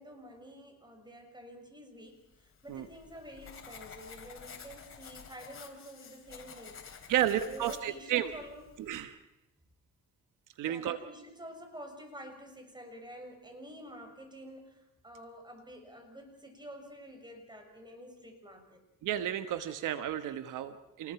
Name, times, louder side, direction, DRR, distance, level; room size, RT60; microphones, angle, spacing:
voice 1, 0.0-8.6 10.6-18.8, equal, 15° right, 5 dB, 6.4 m, -49 dB
Writing, 2.3-9.0, left 6 dB, 45° left, 4.5 m, -51 dB
voice 2, 7.1-8.3 8.8-9.2 10.6-11.0 19.0-21.1, right 11 dB, 85° right, 9 dB, 1.3 m, -32 dB
28.0 x 19.5 x 5.9 m, 0.91 s
cardioid pair, 90°, 30 cm